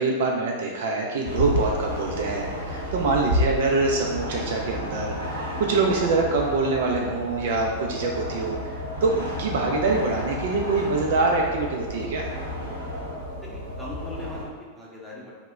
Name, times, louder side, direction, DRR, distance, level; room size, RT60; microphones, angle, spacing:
voice 1, 0.0-5.3 5.6-8.6 9.0-12.3, right 3 dB, 55° right, 0 dB, 0.3 m, -24 dB
sound 1, 1.2-14.4, equal, 85° right, 0.8 m, -31 dB
voice 2, 13.4-15.3, left 1 dB, 5° left, -5 dB, 0.7 m, -40 dB
2.8 x 2.1 x 3.4 m, 1.4 s
figure-of-eight pair, 90°, 0 cm